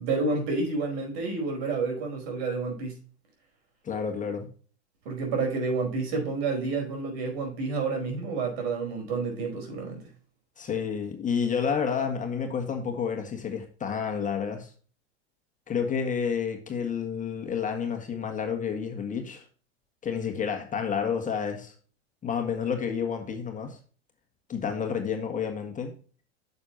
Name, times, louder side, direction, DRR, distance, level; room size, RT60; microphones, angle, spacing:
voice 1, 0.0-3.0 5.0-10.0, right 4 dB, 65° right, 4.9 m, -29 dB
voice 2, 3.8-4.5 10.6-14.7 15.7-19.4 20.0-21.7 22.2-23.8 24.5-25.9, left 6 dB, 25° left, 1.8 m, -30 dB
9.5 x 6.9 x 2.9 m
hypercardioid pair, 100°, 33 cm